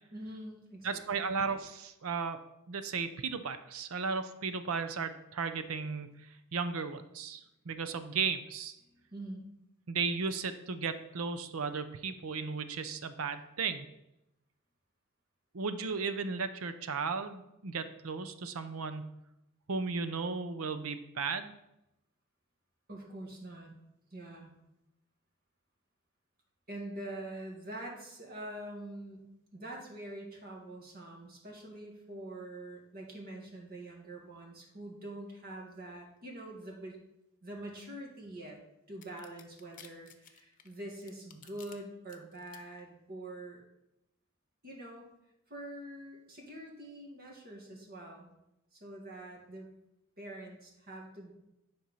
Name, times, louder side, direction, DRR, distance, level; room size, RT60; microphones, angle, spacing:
voice 1, 0.1-1.3 8.8-9.4 22.9-23.8 24.1-24.5 26.7-29.2 29.5-37.0 37.4-38.6 38.9-43.6 44.6-45.1 45.5-48.3 48.7-49.7 50.2-51.3, right 1 dB, 45° right, -1 dB, 2.0 m, -45 dB
voice 2, 0.8-2.4 2.7-8.8 9.9-13.9 15.5-19.1 19.7-21.5, right 5 dB, 80° right, 10 dB, 0.7 m, -35 dB
sound 1, 39.0-41.8 42.1-42.6, left 8 dB, 40° left, 0.8 m, -54 dB
10.5 x 4.5 x 5.5 m, 0.86 s
head